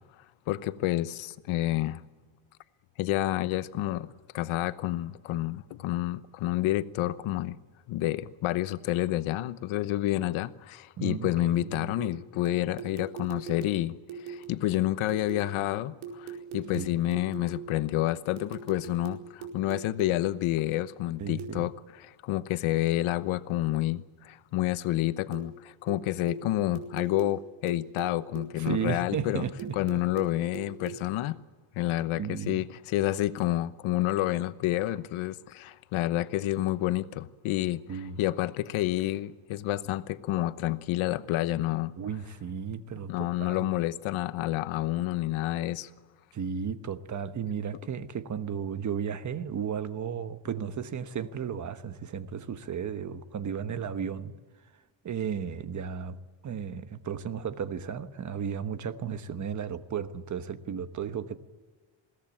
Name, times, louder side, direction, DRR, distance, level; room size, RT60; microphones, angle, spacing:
voice 1, 0.5-2.0 3.0-7.6 7.9-21.7 22.0-29.4 29.8-31.4 31.7-41.9 43.1-45.9, left 15 dB, 90° left, 1.0 m, -29 dB
voice 2, 11.0-11.9 16.7-16.9 21.2-21.7 28.6-29.7 32.2-32.7 37.9-38.2 42.0-43.7 46.3-54.3 55.0-61.4, right 7 dB, 40° right, 1.2 m, -34 dB
sound 1, 12.0-15.6 16.0-17.8 18.4-20.3 21.4-21.7 25.3-25.6 25.9-28.9 29.6-31.1, right 6 dB, 75° right, 4.8 m, -42 dB
21.5 x 17.0 x 8.7 m
cardioid pair, 145°, 47 cm